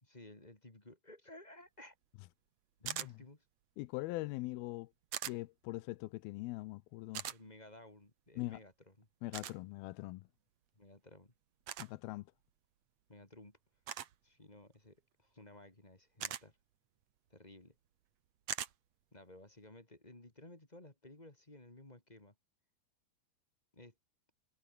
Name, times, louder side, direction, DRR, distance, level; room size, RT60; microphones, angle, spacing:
voice 1, 0.0-2.0 3.0-3.4 7.3-9.1 10.7-11.3 13.1-13.6 14.2-16.6 17.3-17.8 19.1-22.3 23.7-23.9, left 1 dB, 10° left, 2.5 m, -56 dB
sound 1, 2.9-3.1 5.1-5.4 7.1-7.4 9.3-9.6 11.7-11.9 13.9-14.1 16.2-16.4 18.5-18.7, right 10 dB, 55° right, 2.2 m, -40 dB
voice 2, 3.8-4.9 5.3-7.3 8.4-8.6 9.2-10.3 11.8-12.3, left 20 dB, 85° left, 2.5 m, -42 dB
omnidirectional pair, 4.3 m